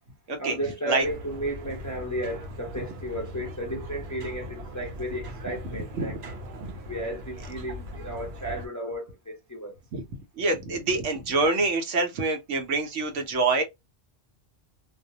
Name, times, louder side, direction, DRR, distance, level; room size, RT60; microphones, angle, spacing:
voice 1, 0.4-6.2 6.9-9.7, right 1 dB, 25° left, 0.4 m, -34 dB
sound 1, 1.0-8.7, equal, 65° right, 0.9 m, -40 dB
voice 2, 10.4-13.6, right 3 dB, 85° right, 1.1 m, -26 dB
2.6 x 2.1 x 2.6 m
omnidirectional pair, 1.2 m